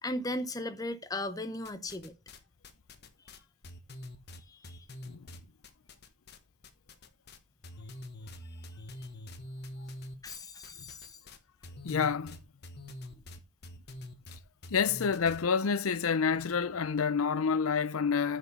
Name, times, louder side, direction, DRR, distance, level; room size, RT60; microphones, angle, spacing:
voice 1, 0.0-2.1 4.5-4.8 10.2-11.2, left 1 dB, 15° left, 0.7 m, -37 dB
sound 1, 1.6-2.4 2.6-6.4 6.6-7.4 7.6-15.4, left 1 dB, 50° left, 1.2 m, -45 dB
voice 2, 11.8-12.4 14.7-18.4, left 6 dB, 85° left, 0.6 m, -28 dB
9.2 x 4.9 x 5.4 m
head